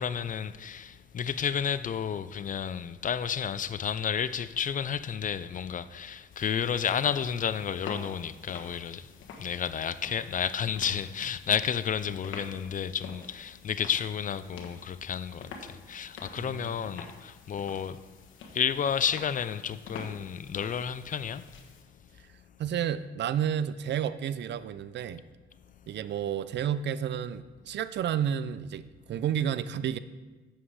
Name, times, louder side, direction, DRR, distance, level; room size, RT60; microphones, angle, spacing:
voice 1, 0.0-9.1 9.4-18.0 18.5-21.5, left 8 dB, 40° left, 0.5 m, -31 dB
sound 1, 6.3-21.8, left 4 dB, 85° left, 1.3 m, -48 dB
voice 2, 16.4-16.9 22.6-25.2 25.9-30.0, right 9 dB, 60° right, 0.5 m, -31 dB
8.7 x 7.4 x 4.9 m
cardioid pair, 90°, 20 cm